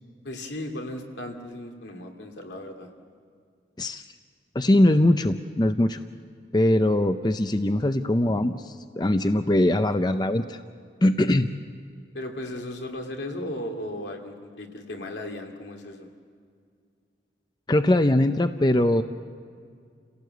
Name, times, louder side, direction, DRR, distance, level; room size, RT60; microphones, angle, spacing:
voice 1, 0.2-2.9 12.1-16.1, left 1 dB, 85° left, 2 dB, 2.7 m, -36 dB
voice 2, 4.5-6.0 6.5-10.6 11.0-11.5 17.7-19.0, left 1 dB, 25° left, 9 dB, 0.6 m, -21 dB
28.5 x 17.0 x 8.0 m, 2.2 s
head